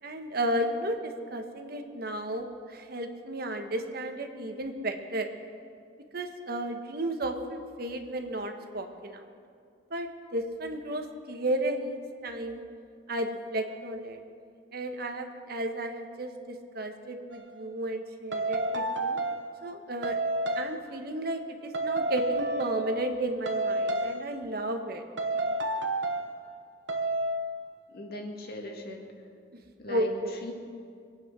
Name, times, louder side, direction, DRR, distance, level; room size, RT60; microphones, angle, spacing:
voice 1, 0.0-5.3 6.1-9.2 9.9-12.7 13.1-14.2 14.7-19.2 19.6-20.2 20.5-25.0 29.9-30.3, right 1 dB, 55° right, 5 dB, 1.3 m, -33 dB
sound 1, 17.3-17.5 18.3-19.6 20.0-20.8 21.7-23.2 23.5-24.4 25.2-26.4 26.9-27.5, right 2 dB, 80° right, 1.1 m, -30 dB
voice 2, 27.9-29.0 29.8-30.5, left 2 dB, 60° left, 2 dB, 2.1 m, -39 dB
23.5 x 8.9 x 6.2 m, 2.3 s
head